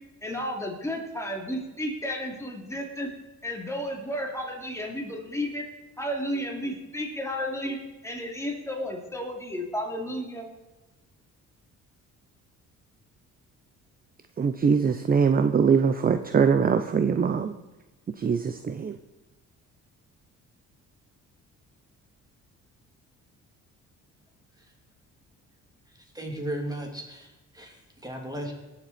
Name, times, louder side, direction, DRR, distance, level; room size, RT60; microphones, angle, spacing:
voice 1, 0.2-3.1 3.4-5.6 6.0-10.5, equal, 10° left, 0 dB, 2.8 m, -32 dB
voice 2, 14.4-17.5 18.2-18.9, right 6 dB, 30° right, 10 dB, 0.6 m, -22 dB
voice 3, 25.9-27.3 27.5-28.5, right 1 dB, 10° right, 1 dB, 2.9 m, -35 dB
18.5 x 7.3 x 4.3 m, 1.1 s
cardioid pair, 100°, 30 cm